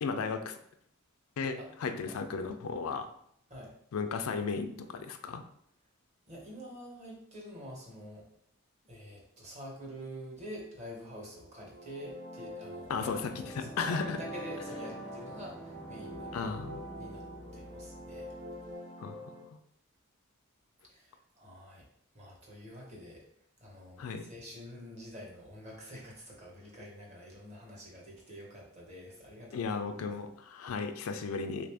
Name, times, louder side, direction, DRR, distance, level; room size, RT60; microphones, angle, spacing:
voice 1, 0.0-0.5 1.4-3.1 3.9-5.4 12.9-13.3 13.6-14.2 16.3-16.8 19.0-19.2 24.0-24.2 29.5-31.7, left 5 dB, 85° left, 7 dB, 0.4 m, -35 dB
voice 2, 6.3-8.3 8.8-16.4 17.0-17.2 17.5-18.3 20.8-21.9 22.1-23.2 23.6-30.1, equal, 30° right, -2 dB, 0.9 m, -47 dB
sound 1, 11.5-19.4, equal, 75° right, 1.0 m, -45 dB
sound 2, 12.8-18.7, equal, 5° left, 0.6 m, -49 dB
3.4 x 2.5 x 3.3 m, 0.70 s
head